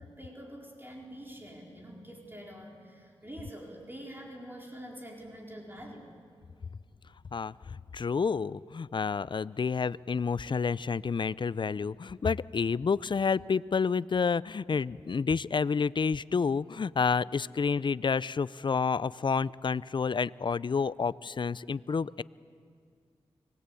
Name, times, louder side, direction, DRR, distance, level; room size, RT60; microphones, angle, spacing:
voice 1, 0.0-6.1, right 1 dB, 20° right, -1 dB, 4.7 m, -46 dB
voice 2, 7.3-22.2, left 5 dB, 50° left, 20 dB, 0.5 m, -29 dB
25.0 x 20.0 x 8.5 m, 2.2 s
cardioid pair, 45°, 11 cm